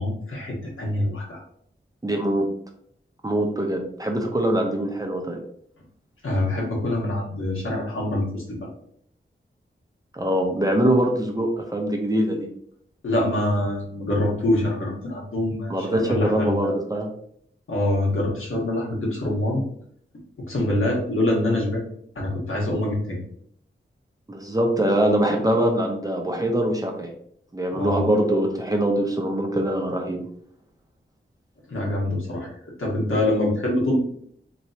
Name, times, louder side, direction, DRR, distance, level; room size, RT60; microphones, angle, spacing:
voice 1, 0.0-1.4 6.2-8.6 13.0-16.7 17.7-19.6 20.5-21.8 22.1-23.2 27.7-28.1 31.7-32.5 32.8-34.0, left 1 dB, 80° left, -3 dB, 1.4 m, -25 dB
voice 2, 2.0-2.5 3.2-5.4 10.1-12.5 15.7-17.1 24.3-27.1 27.5-30.2, right 1 dB, 15° right, 2 dB, 0.7 m, -23 dB
4.2 x 3.1 x 2.8 m, 0.65 s
wide cardioid pair, 110°, 21 cm